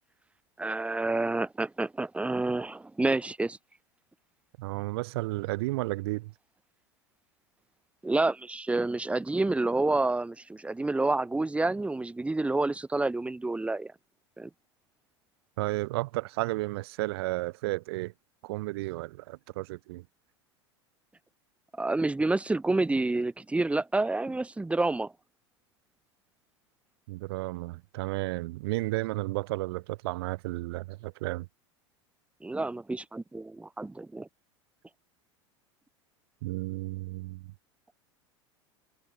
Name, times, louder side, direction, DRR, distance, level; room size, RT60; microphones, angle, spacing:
voice 1, 0.6-3.6 8.0-13.9 14.4-14.5 21.8-25.1 32.4-34.3, right 2 dB, 10° right, 1.8 m, -28 dB
voice 2, 4.6-6.3 15.6-18.1 18.4-20.0 27.1-31.5 36.4-37.5, right 20 dB, 55° right, 0.8 m, -33 dB
figure-of-eight pair, 80°, 15 cm